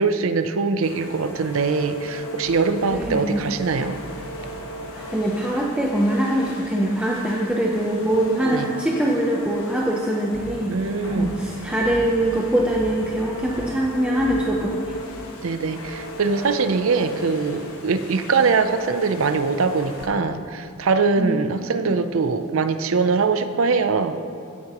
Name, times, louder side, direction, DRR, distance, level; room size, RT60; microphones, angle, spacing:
voice 1, 0.0-4.0 8.4-8.7 10.7-11.3 15.4-24.3, right 4 dB, 70° right, 10 dB, 0.5 m, -22 dB
sound 1, 0.8-20.1, equal, 80° left, 1.1 m, -36 dB
sound 2, 2.9-7.9 10.3-15.0, equal, 25° left, 1.9 m, -42 dB
voice 2, 2.9-3.4 4.9-10.7 11.2-15.0 21.2-22.0, right 1 dB, 5° right, -3 dB, 0.6 m, -23 dB
15.5 x 9.4 x 3.0 m, 2.5 s
head